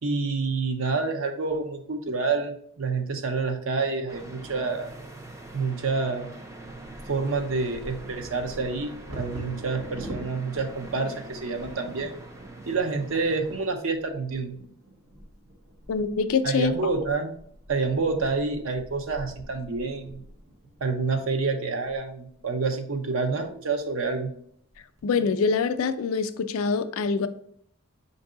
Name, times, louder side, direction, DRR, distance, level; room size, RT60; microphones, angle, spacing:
voice 1, 0.0-4.9 5.5-6.3 7.1-12.1 12.7-14.6 16.4-17.4 17.7-20.2 20.8-24.3, right 4 dB, 60° right, 0.6 m, -28 dB
sound 1, 4.1-13.7, right 2 dB, 15° right, 0.3 m, -44 dB
Bird vocalization bird call bird song / Wind / Thunder, 6.7-22.5 23.2-23.3 23.6-24.0 24.5-25.0, right 1 dB, 80° right, 1.1 m, -45 dB
voice 2, 15.9-16.8 25.0-27.3, left 5 dB, 70° left, 0.3 m, -25 dB
5.3 x 2.6 x 3.7 m
head